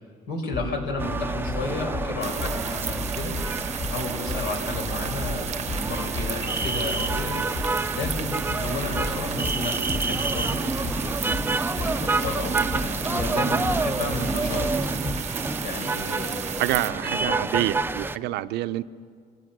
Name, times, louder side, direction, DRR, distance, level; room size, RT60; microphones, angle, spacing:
voice 1, 0.3-3.3 3.9-7.4 7.9-11.2 11.8-14.7 15.6-16.4 16.8-17.4, left 3 dB, 80° left, 3 dB, 4.8 m, -33 dB
Bass drum, 0.5-15.5, left 1 dB, 55° left, 2.5 m, -34 dB
sound 1, 1.0-18.2, right 3 dB, 10° right, 0.6 m, -29 dB
sound 2, 2.2-16.9, right 8 dB, 40° right, 0.8 m, -35 dB
voice 2, 16.6-18.8, right 14 dB, 80° right, 13 dB, 0.6 m, -27 dB
27.0 x 16.5 x 6.7 m, 2.2 s
cardioid pair, 110°, 17 cm